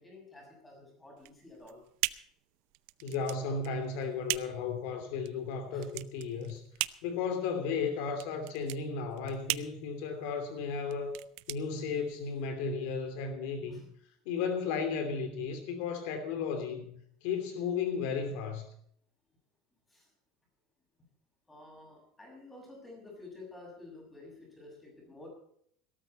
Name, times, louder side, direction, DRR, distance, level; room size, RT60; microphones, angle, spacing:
voice 1, 0.0-1.8 5.7-5.9 13.7-13.8 19.9-20.1 21.5-25.3, left 2 dB, 10° left, 0 dB, 6.5 m, -51 dB
sound 1, 1.2-12.5, right 21 dB, 70° right, 0.6 m, -40 dB
voice 2, 3.0-6.6 7.0-11.1 11.5-13.9 14.2-16.9 17.2-18.7, left 5 dB, 70° left, 8 dB, 2.9 m, -34 dB
18.0 x 13.0 x 4.3 m, 0.65 s
cardioid pair, 170°, 0 cm